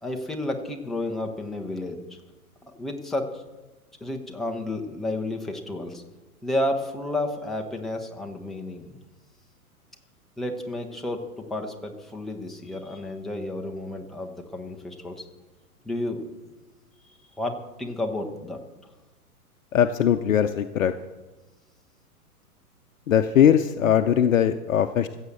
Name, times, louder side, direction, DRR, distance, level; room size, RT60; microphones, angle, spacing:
voice 1, 0.0-2.2 2.7-3.4 4.0-6.0 6.4-9.0 10.4-15.3 15.8-16.3 17.4-18.6, left 1 dB, ahead, 1 dB, 0.5 m, -31 dB
voice 2, 19.7-20.9 23.1-25.2, left 9 dB, 60° left, 8 dB, 0.7 m, -20 dB
15.5 x 7.3 x 6.5 m, 1.1 s
figure-of-eight pair, 110°, 45 cm